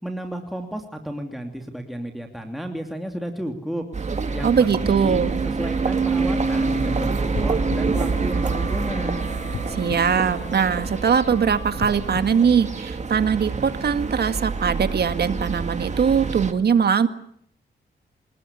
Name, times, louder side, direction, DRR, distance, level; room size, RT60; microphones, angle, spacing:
voice 1, 0.0-3.8 4.3-9.2, equal, ahead, 3 dB, 2.8 m, -32 dB
sound 1, 3.9-16.5, right 4 dB, 40° right, 2.5 m, -26 dB
voice 2, 4.4-5.3 9.7-17.1, right 7 dB, 60° right, 10 dB, 1.9 m, -21 dB
sound 2, 5.7-12.7, left 3 dB, 30° left, 2.8 m, -42 dB
sound 3, 9.5-11.1 11.7-13.4 14.0-14.1, left 7 dB, 75° left, 1.6 m, -39 dB
28.5 x 20.0 x 9.9 m, 0.68 s
wide cardioid pair, 120°, 18 cm